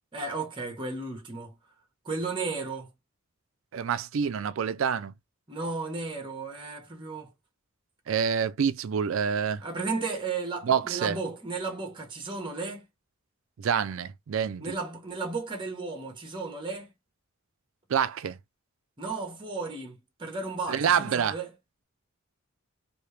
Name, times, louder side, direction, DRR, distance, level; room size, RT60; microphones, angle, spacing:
voice 1, 0.1-1.5 2.0-2.9 5.5-7.3 9.6-12.8 14.6-16.9 19.0-21.5, right 3 dB, 25° right, 1.1 m, -34 dB
voice 2, 3.7-5.1 8.1-9.6 10.6-11.2 13.6-14.8 17.9-18.4 20.7-21.4, right 7 dB, 70° right, 0.4 m, -27 dB
3.1 x 2.8 x 3.3 m
head